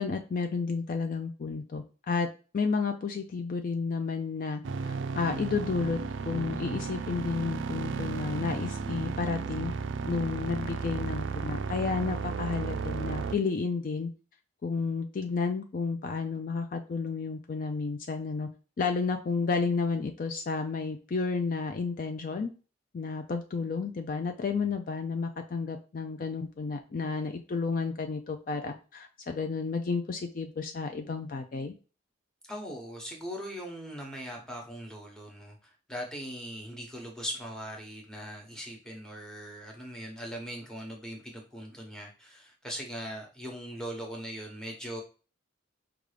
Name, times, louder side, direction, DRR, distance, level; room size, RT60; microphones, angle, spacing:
voice 1, 0.0-2.3 2.5-6.0 6.3-9.7 10.0-14.1 14.6-18.5 18.8-22.5 22.9-31.7, left 4 dB, 45° left, 6 dB, 0.4 m, -31 dB
sound 1, 4.6-13.4, right 5 dB, 70° right, 0.3 m, -34 dB
voice 2, 32.5-45.0, equal, 5° left, 0 dB, 0.9 m, -40 dB
5.1 x 2.3 x 3.3 m, 0.35 s
head